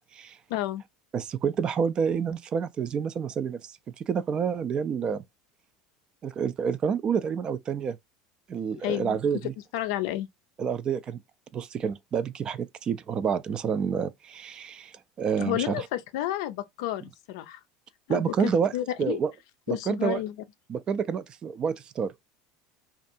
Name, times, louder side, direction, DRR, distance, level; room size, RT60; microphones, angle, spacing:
voice 1, 0.5-0.8 8.8-9.2 9.7-10.3 15.4-17.6 18.1-19.2 19.7-20.3, left 14 dB, 75° left, 0.4 m, -31 dB
voice 2, 1.1-5.2 6.2-8.0 8.5-9.5 10.6-11.2 11.5-15.9 18.1-18.7 19.0-19.3 19.7-20.2 20.7-22.1, right 6 dB, 35° right, 0.3 m, -28 dB
2.5 x 2.3 x 2.6 m
supercardioid pair, 100°, 3 cm